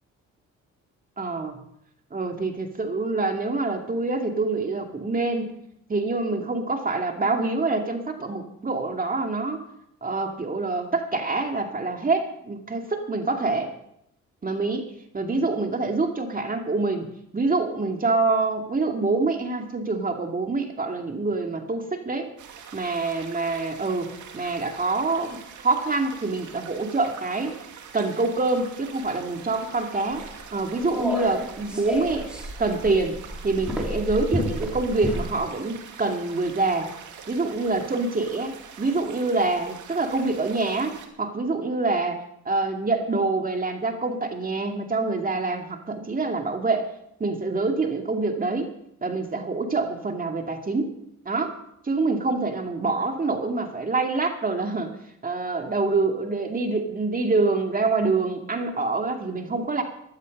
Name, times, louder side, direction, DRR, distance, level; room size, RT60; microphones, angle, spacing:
voice 1, 1.2-1.6 2.1-5.6 5.9-9.6 10.0-13.7 14.4-14.9 15.1-22.3 22.7-27.5 27.9-30.2 30.5-32.3 32.6-33.2 33.4-36.9 37.3-46.9 47.2-48.7 49.0-50.9 51.3-51.5 51.8-54.9 55.2-59.8, right 3 dB, 30° right, 4 dB, 2.3 m, -26 dB
sound 1, 22.4-41.1, right 7 dB, 75° right, 2.2 m, -44 dB
sound 2, 30.1-35.3, left 1 dB, 5° right, 3.4 m, -31 dB
15.5 x 12.0 x 5.3 m, 0.75 s
cardioid pair, 90°, 30 cm